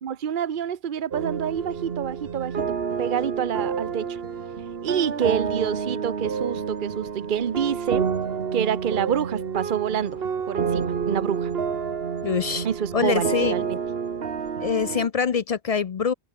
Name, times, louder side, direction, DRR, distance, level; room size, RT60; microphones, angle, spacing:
voice 1, 0.0-4.2 4.8-8.1 8.5-10.2 10.5-11.5 12.6-13.8, right 8 dB, 55° right, 1.0 m, -27 dB
sound 1, 1.1-15.1, right 6 dB, 70° right, 1.5 m, -29 dB
voice 2, 12.2-12.7 12.9-13.5 14.6-16.1, left 6 dB, 45° left, 0.5 m, -24 dB
omnidirectional pair, 1.0 m